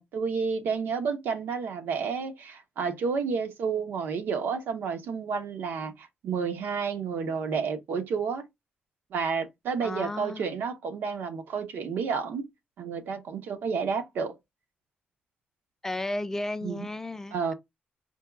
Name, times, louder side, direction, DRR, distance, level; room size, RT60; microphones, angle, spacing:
voice 1, 0.0-8.4 9.1-12.4 12.8-14.3 16.6-16.8 17.3-17.5, right 5 dB, 80° right, 0.9 m, -30 dB
voice 2, 9.8-10.5 15.8-17.5, left 2 dB, 15° left, 0.4 m, -34 dB
4.4 x 2.3 x 3.5 m
cardioid pair, 135°, 3 cm